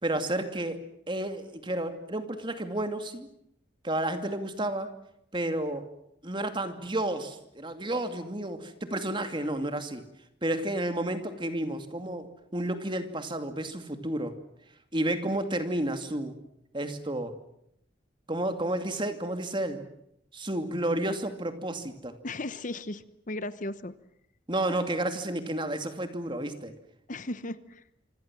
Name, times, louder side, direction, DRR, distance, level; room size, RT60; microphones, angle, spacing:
voice 1, 0.0-0.8 1.1-3.3 3.8-4.9 5.3-5.9 6.2-10.0 10.4-12.3 12.5-14.3 14.9-16.3 16.7-17.3 18.3-19.8 20.3-22.2 24.5-26.7, right 1 dB, 25° right, 8 dB, 2.5 m, -31 dB
voice 2, 22.2-23.9 27.1-27.8, left 2 dB, 45° left, 13 dB, 1.0 m, -36 dB
26.5 x 25.5 x 7.5 m, 0.76 s
head